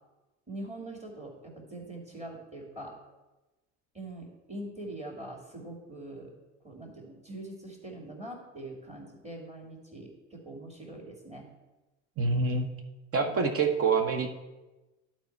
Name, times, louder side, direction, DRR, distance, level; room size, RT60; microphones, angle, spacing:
voice 1, 0.5-2.9 3.9-6.3 6.6-11.5 13.2-13.4, right 1 dB, 20° right, 1 dB, 2.5 m, -43 dB
voice 2, 12.2-12.7 13.1-14.3, right 4 dB, 40° right, 5 dB, 1.0 m, -26 dB
11.0 x 4.3 x 4.6 m, 1.1 s
hypercardioid pair, 75°, 36 cm